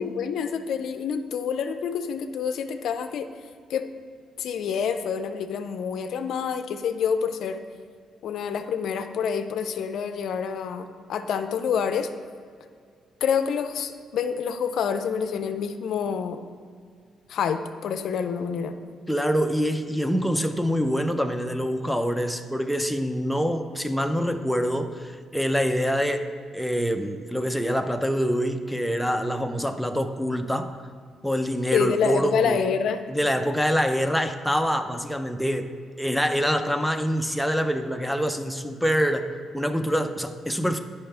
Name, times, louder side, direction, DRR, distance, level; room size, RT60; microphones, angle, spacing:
voice 1, 0.0-3.3 3.7-3.9 4.4-7.6 8.2-12.1 13.2-16.4 17.3-18.7 31.7-33.0, left 7 dB, 70° left, 8 dB, 0.4 m, -27 dB
voice 2, 19.1-30.8 31.2-32.6 33.1-40.8, equal, ahead, 6 dB, 0.5 m, -25 dB
9.1 x 5.6 x 3.4 m, 2.1 s
cardioid pair, 90°, 0 cm